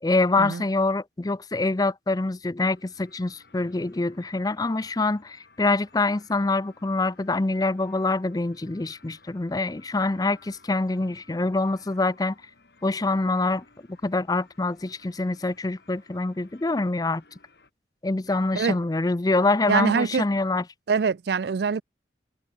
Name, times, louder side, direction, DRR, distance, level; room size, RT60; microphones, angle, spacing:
voice 1, 0.0-12.4 12.8-13.6 14.0-17.2 18.0-20.6, left 2 dB, 20° left, 0.5 m, -25 dB
sound 1, 2.7-17.7, left 3 dB, 65° left, 3.2 m, -58 dB
voice 2, 19.7-20.2 20.9-21.8, right 5 dB, 65° right, 0.4 m, -24 dB
head